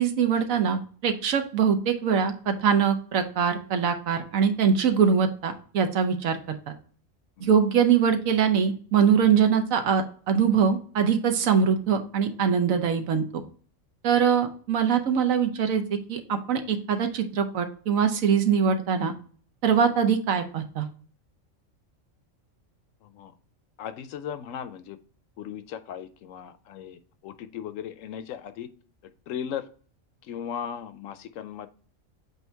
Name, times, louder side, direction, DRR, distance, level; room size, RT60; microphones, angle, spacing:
voice 1, 0.0-6.4 6.7-6.8 7.4-13.2 14.0-15.8 16.1-19.1 19.6-20.9, right 7 dB, 80° right, 6 dB, 1.2 m, -23 dB
voice 2, 23.0-23.3 23.8-25.0 25.4-28.7 29.3-29.7 30.2-31.7, left 8 dB, 75° left, 12 dB, 0.9 m, -37 dB
7.9 x 2.8 x 4.4 m, 0.43 s
omnidirectional pair, 1.4 m